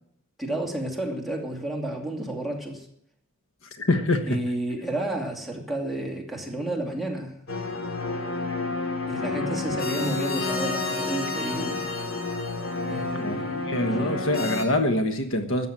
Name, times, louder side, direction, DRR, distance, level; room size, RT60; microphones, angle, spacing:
voice 1, 0.4-2.9 4.2-7.3 9.1-11.8 12.9-14.3, right 1 dB, ahead, 0 dB, 2.7 m, -31 dB
voice 2, 3.7-4.4 13.2-13.4 13.7-15.7, left 1 dB, 70° left, 7 dB, 1.3 m, -24 dB
sound 1, 7.5-14.7, left 3 dB, 85° left, 2.3 m, -29 dB
13.5 x 8.4 x 8.9 m, 0.71 s
head